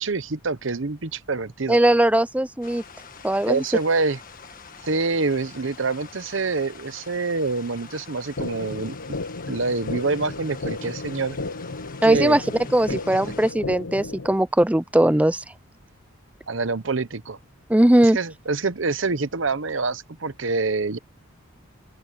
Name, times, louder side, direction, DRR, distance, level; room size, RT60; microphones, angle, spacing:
voice 1, 0.0-1.8 3.5-4.2 4.8-8.9 9.5-11.4 12.0-12.4 12.9-13.0 16.5-17.4 18.0-21.0, right 3 dB, 65° right, 0.9 m, -26 dB
voice 2, 1.7-2.8 3.2-3.6 12.0-12.4 12.7-15.4 17.7-18.2, right 1 dB, 5° right, 0.5 m, -19 dB
sound 1, 2.6-13.5, left 6 dB, 40° left, 1.7 m, -45 dB
sound 2, 8.4-14.4, left 3 dB, 70° left, 0.9 m, -33 dB
open air
head